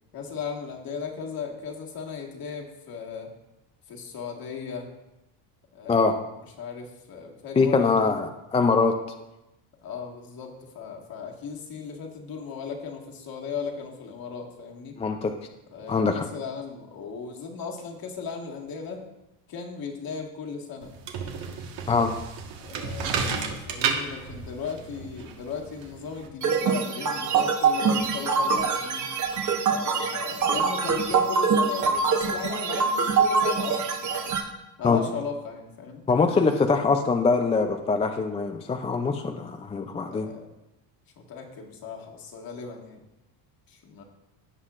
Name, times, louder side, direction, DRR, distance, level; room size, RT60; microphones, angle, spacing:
voice 1, 0.1-3.3 3.9-4.9 5.7-6.2 6.6-7.9 9.8-15.0 15.7-19.0 19.5-20.9 22.6-29.1 29.7-34.3 34.8-36.0 40.1-40.5 41.2-43.0 43.7-44.0, left 6 dB, 50° left, 0 dB, 1.8 m, -36 dB
voice 2, 7.6-8.9 15.0-15.3 15.9-16.2 21.9-22.1 34.8-35.0 36.1-40.3, left 4 dB, 15° left, 5 dB, 0.4 m, -23 dB
sound 1, 20.8-26.3, right 5 dB, 65° right, 1.5 m, -32 dB
sound 2, 26.4-34.4, right 5 dB, 40° right, 1.2 m, -24 dB
16.5 x 5.5 x 2.5 m, 0.95 s
supercardioid pair, 110°, 47 cm